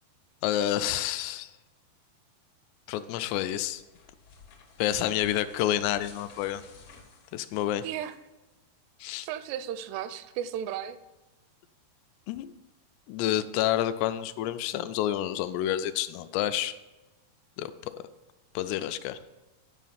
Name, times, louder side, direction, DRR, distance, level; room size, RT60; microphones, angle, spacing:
voice 1, 0.4-1.5 2.9-3.8 4.8-6.6 7.3-7.8 9.0-9.3 12.3-12.5 13.1-16.8 17.6-17.7 18.6-19.2, left 12 dB, 90° left, 11 dB, 2.7 m, -29 dB
sound 1, 3.5-8.2, left 5 dB, 75° left, 1.4 m, -54 dB
voice 2, 7.8-8.2 9.2-11.0, right 10 dB, 85° right, 13 dB, 2.6 m, -34 dB
10.0 x 5.1 x 5.6 m, 1.1 s
omnidirectional pair, 4.8 m